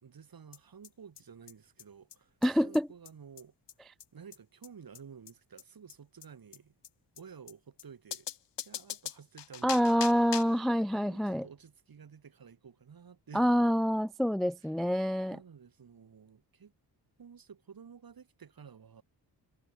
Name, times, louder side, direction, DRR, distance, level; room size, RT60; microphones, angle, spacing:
voice 1, 0.0-2.4 2.6-3.5 4.1-6.7 7.2-8.3 8.6-10.3 10.9-13.4 14.6-14.7 15.3-16.7 17.2-19.0, right 7 dB, 55° right, 4.4 m, -52 dB
sound 1, 0.5-0.6 0.8-0.9 1.2-1.3 1.5-1.6 1.8-1.9 2.1-2.2 2.4-2.5 2.7-2.8 3.0-3.1 3.4-3.5 3.7-3.8 4.0-4.1 4.3-4.4 4.6-4.7 4.9-5.0 5.3-5.4 5.6-5.7 5.9-6.0 6.2-6.3 6.5-6.6 6.8-6.9 7.2-7.3 7.5-7.6 7.8-7.9 8.1-10.6, left 9 dB, 70° left, 1.7 m, -41 dB
voice 2, 2.4-2.9 9.6-11.5 13.3-15.4, equal, ahead, 0.3 m, -27 dB
wide cardioid pair, 140°, 43 cm